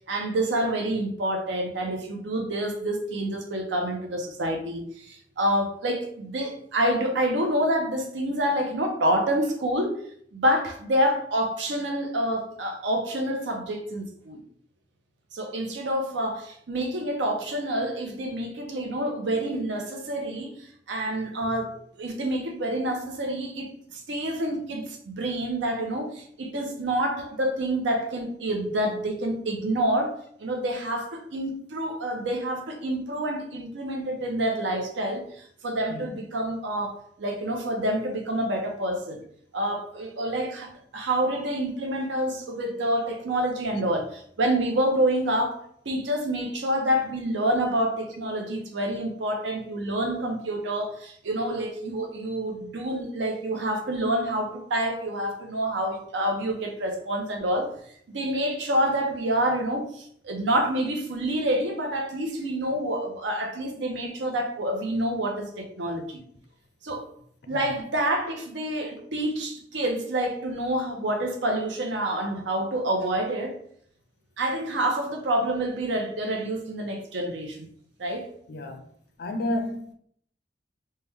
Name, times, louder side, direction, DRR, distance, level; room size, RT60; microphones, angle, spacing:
voice 1, 0.1-10.0 10.3-14.4 15.3-39.2 39.5-45.6 45.9-57.7 58.1-66.2 66.8-67.1 67.5-73.6 74.4-77.7 78.0-78.3, right 1 dB, 90° right, 0.7 m, -28 dB
voice 2, 78.5-78.8 79.2-79.9, left 1 dB, 60° left, 0.5 m, -30 dB
3.3 x 2.1 x 3.3 m
head